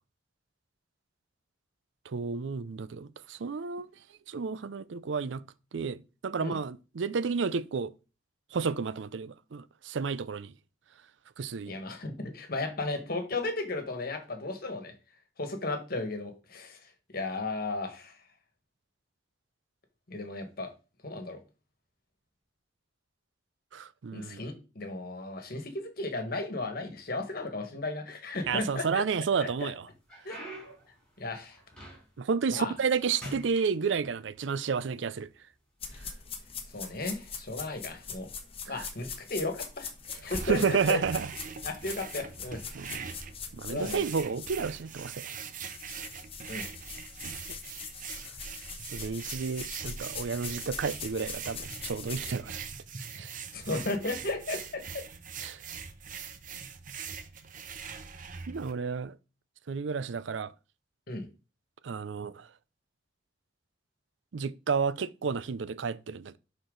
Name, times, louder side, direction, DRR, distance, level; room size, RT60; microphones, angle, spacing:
voice 1, 2.1-3.9 4.3-5.4 5.7-7.9 8.5-10.5 11.4-11.8 23.7-24.4 28.4-29.9 32.2-35.3 38.7-38.9 40.4-41.3 42.7-43.1 43.5-45.3 47.2-47.4 48.9-52.6 53.1-53.3 55.4-55.6 58.5-59.2 59.7-60.5 61.8-62.5 64.3-66.4, right 5 dB, 85° right, 0.5 m, -31 dB
voice 2, 11.7-14.9 15.4-18.2 20.1-20.7 21.0-21.4 24.1-29.0 29.4-29.7 30.2-30.4 31.2-31.6 32.5-32.7 36.7-38.3 38.7-41.0 41.6-42.6 43.7-44.0 46.4-46.6 53.5-55.0 61.1-61.3, left 2 dB, 55° left, 1.6 m, -35 dB
sound 1, 28.3-29.1 29.6-32.3 32.7-33.0 33.2-34.4 35.3-35.4 36.1-36.3 37.4-37.6, equal, 5° left, 4.7 m, -46 dB
sound 2, 35.8-44.9 45.2-52.3, left 6 dB, 30° left, 1.2 m, -42 dB
sound 3, 40.1-58.7, right 6 dB, 45° right, 0.8 m, -42 dB
11.0 x 4.5 x 3.9 m
head